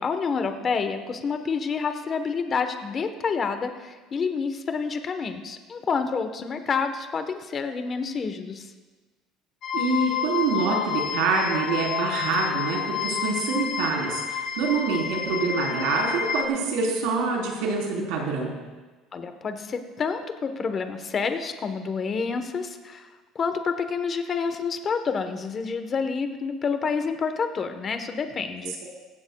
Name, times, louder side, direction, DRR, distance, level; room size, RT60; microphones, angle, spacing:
voice 1, 0.0-8.7 19.1-23.1 23.3-28.7, left 5 dB, 35° left, 8 dB, 1.1 m, -28 dB
sound 1, 9.6-16.5, left 7 dB, 55° left, 1.2 m, -29 dB
voice 2, 9.7-18.5, right 4 dB, 85° right, -1 dB, 3.7 m, -26 dB
16.0 x 16.0 x 2.3 m, 1.3 s
cardioid pair, 120°, 0 cm